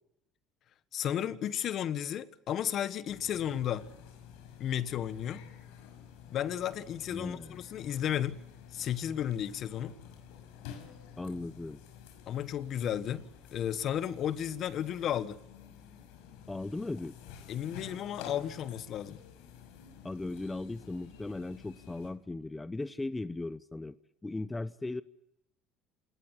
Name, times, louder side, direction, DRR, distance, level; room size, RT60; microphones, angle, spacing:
voice 1, 0.9-3.8 4.6-5.4 6.3-8.4 8.7-9.9 12.3-13.2 13.5-15.4 17.5-19.2, left 10 dB, 55° left, 1.5 m, -33 dB
sound 1, 3.1-22.1, left 8 dB, 85° left, 5.9 m, -51 dB
voice 2, 7.1-7.6 11.2-11.8 16.5-17.1 20.0-24.0 24.2-25.0, left 2 dB, 15° left, 0.8 m, -37 dB
27.5 x 19.0 x 8.4 m
supercardioid pair, 100°, 0 cm